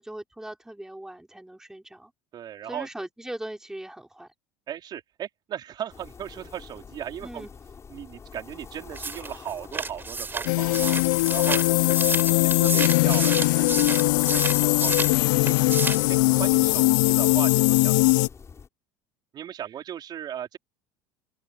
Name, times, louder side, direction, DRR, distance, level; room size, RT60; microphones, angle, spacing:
voice 1, 0.0-2.1 2.6-4.3 7.2-7.5, right 1 dB, 5° right, 5.3 m, -39 dB
voice 2, 2.3-2.9 4.7-7.5 7.9-11.0 11.3-12.0 12.2-15.7 16.1-18.0 19.3-20.6, right 10 dB, 45° right, 4.3 m, -37 dB
sound 1, 5.9-18.7, left 5 dB, 30° left, 7.3 m, -44 dB
sound 2, 8.9-15.2 15.5-16.1, right 4 dB, 20° right, 4.0 m, -31 dB
sound 3, 10.5-18.3, left 23 dB, 75° left, 0.5 m, -21 dB
hypercardioid pair, 85°, 10 cm